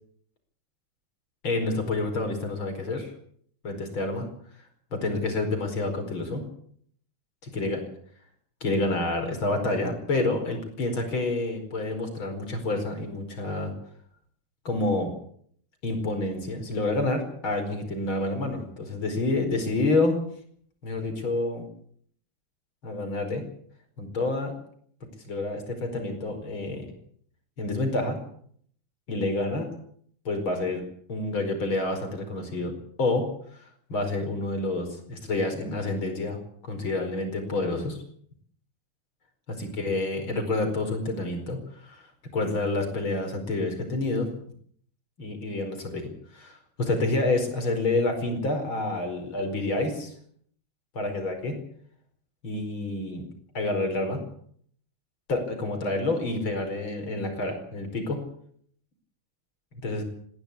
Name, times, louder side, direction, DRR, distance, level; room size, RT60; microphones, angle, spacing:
voice 1, 1.4-3.1 3.6-4.3 4.9-6.4 7.4-7.8 8.6-13.7 14.7-15.1 15.8-20.2 20.8-21.7 22.8-23.4 24.0-24.5 25.3-26.9 27.6-28.2 29.1-29.7 30.3-33.6 33.9-38.0 39.6-42.1 42.3-44.3 45.2-50.1 51.0-51.6 52.4-53.3 53.5-54.2 55.3-58.2 59.8-60.0, left 2 dB, 85° left, 6 dB, 5.7 m, -28 dB
20.5 x 16.0 x 8.6 m, 0.62 s
omnidirectional pair, 2.2 m